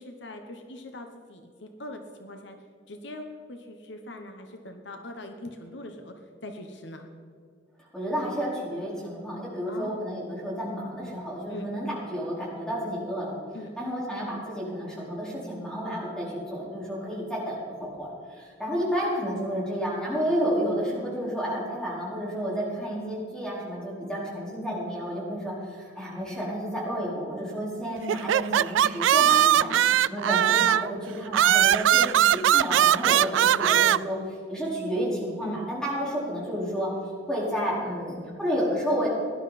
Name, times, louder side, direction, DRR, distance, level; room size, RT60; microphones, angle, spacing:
voice 1, 0.0-7.1 9.7-10.1 11.5-11.6 13.5-13.7 16.2-16.3 17.0-17.3 24.0-24.2 29.5-30.2 35.4-35.6, left 1 dB, 65° left, 5 dB, 1.1 m, -42 dB
voice 2, 7.8-13.4 13.8-29.8 30.1-36.9 37.3-39.1, equal, 5° left, -6 dB, 4.5 m, -31 dB
sound 1, 28.1-30.9 31.3-34.0, right 11 dB, 85° right, 0.3 m, -20 dB
18.0 x 11.5 x 4.2 m, 2.1 s
head